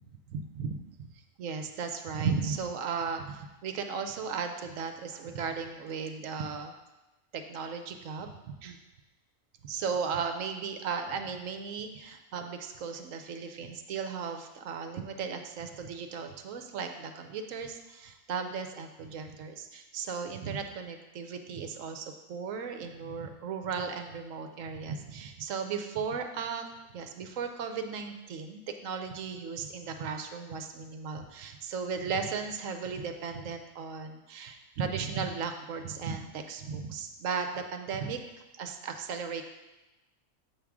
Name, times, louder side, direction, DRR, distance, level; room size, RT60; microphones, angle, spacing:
voice 1, 0.3-1.1 1.4-6.7 7.3-8.8 9.6-26.7 26.9-38.2 38.6-39.4, right 5 dB, 70° right, 6 dB, 0.9 m, -36 dB
7.2 x 3.6 x 6.0 m, 1.0 s
omnidirectional pair, 1.5 m